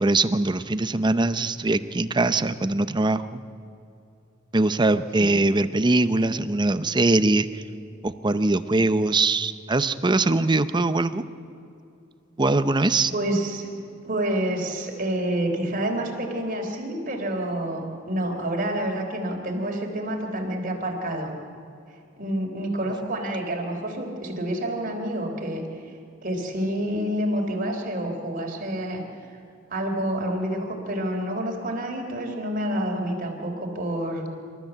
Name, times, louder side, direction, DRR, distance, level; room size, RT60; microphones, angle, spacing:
voice 1, 0.0-3.4 4.5-7.6 8.0-11.2 12.4-13.1, right 2 dB, 25° right, 12 dB, 0.7 m, -22 dB
voice 2, 13.1-13.7 14.0-21.3 22.2-25.9 26.2-29.0 29.7-34.3, right 1 dB, 45° right, 1 dB, 3.6 m, -28 dB
27.0 x 13.5 x 7.9 m, 2.6 s
head